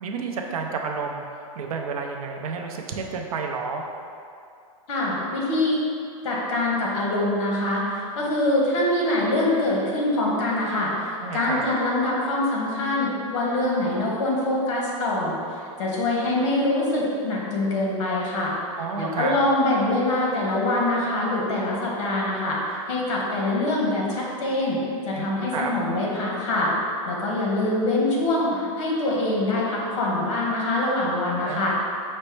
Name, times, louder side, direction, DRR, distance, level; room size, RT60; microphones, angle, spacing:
voice 1, 0.0-1.2 1.5-3.8 11.2-11.6 18.8-19.4 25.1-25.7 31.4-31.7, right 5 dB, 90° right, 2 dB, 0.6 m, -30 dB
voice 2, 4.9-5.8 6.2-15.4 15.8-18.5 19.0-24.8 25.1-26.7 27.1-31.7, left 2 dB, 55° left, -3 dB, 1.2 m, -24 dB
5.2 x 2.2 x 4.5 m, 2.4 s
supercardioid pair, 170°, 18 cm